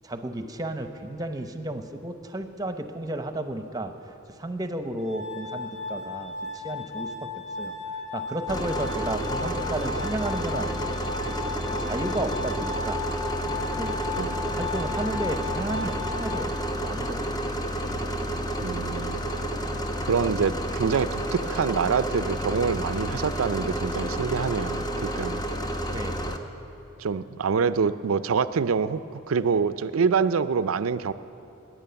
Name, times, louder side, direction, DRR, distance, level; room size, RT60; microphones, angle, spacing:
voice 1, 0.0-3.9 4.4-7.3 7.6-7.8 8.1-11.3 11.8-13.0 13.7-13.9 14.4-16.5 16.8-17.5 25.9-26.2, right 1 dB, 20° right, 7 dB, 0.8 m, -33 dB
Glass, 5.0-17.0, left 4 dB, 60° left, 2.6 m, -35 dB
sound 1, 8.5-26.4, right 1 dB, 20° left, 0.8 m, -30 dB
voice 2, 18.6-19.3 20.0-25.4 27.0-31.1, right 5 dB, 75° right, 14 dB, 0.5 m, -26 dB
19.5 x 9.2 x 6.9 m, 2.8 s
head